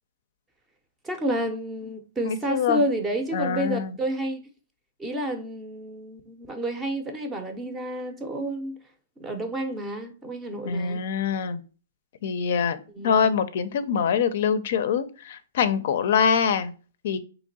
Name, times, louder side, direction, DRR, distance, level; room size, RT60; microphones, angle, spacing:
voice 1, 1.0-4.4 5.0-8.8 9.2-11.0 12.9-13.4, right 1 dB, 10° right, 0.6 m, -30 dB
voice 2, 2.2-2.8 3.3-3.9 10.6-11.6 12.2-12.8 13.0-16.7 17.0-17.2, left 7 dB, 55° left, 0.4 m, -24 dB
3.6 x 2.9 x 4.0 m
hypercardioid pair, 160°, 0 cm